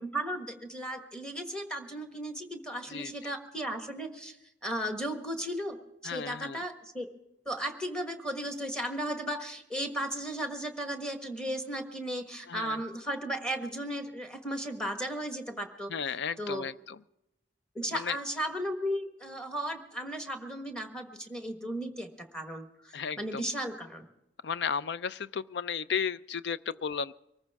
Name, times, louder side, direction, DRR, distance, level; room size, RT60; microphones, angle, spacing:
voice 1, 0.0-4.4 4.6-5.8 6.0-7.1 7.4-15.9 16.4-16.6 17.7-24.0, right 1 dB, 5° left, 5 dB, 1.4 m, -35 dB
voice 2, 2.9-3.3 6.0-6.6 12.5-12.8 15.9-17.0 17.9-18.2 22.9-23.5 24.4-27.1, left 6 dB, 65° left, 16 dB, 0.4 m, -34 dB
23.5 x 14.5 x 3.6 m, 0.84 s
head